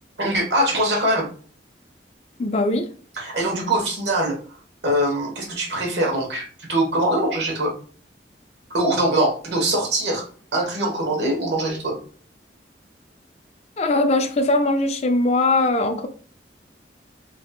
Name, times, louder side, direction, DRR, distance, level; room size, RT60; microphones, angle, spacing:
voice 1, 0.2-1.3 3.1-4.6 4.8-7.7 8.7-10.3 10.5-11.9, right 1 dB, 75° right, 0 dB, 1.2 m, -22 dB
voice 2, 2.4-2.9 13.8-16.1, left 2 dB, 35° left, 6 dB, 0.4 m, -20 dB
3.4 x 3.2 x 2.3 m, 0.43 s
head